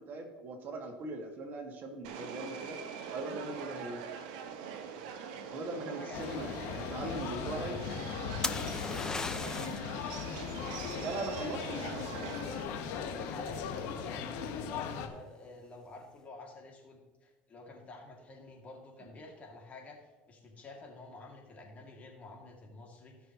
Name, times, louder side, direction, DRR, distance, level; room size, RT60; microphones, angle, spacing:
voice 1, 0.0-2.8 3.1-4.0 5.5-6.5 6.7-7.8 8.9-9.0 9.5-9.7 11.0-12.6, right 2 dB, 45° right, 3 dB, 2.0 m, -40 dB
Subway metro underground, 2.0-12.6, right 7 dB, 85° right, 1.2 m, -44 dB
voice 2, 5.5-7.7 12.6-20.0 20.3-23.3, left 2 dB, 35° left, 0 dB, 2.6 m, -50 dB
sound 1, 6.1-15.1, left 7 dB, 70° left, 1.4 m, -38 dB
sound 2, 8.4-9.9 13.6-14.0, left 3 dB, 15° left, 0.6 m, -36 dB
17.5 x 6.0 x 3.1 m, 1.2 s
supercardioid pair, 110°, 4 cm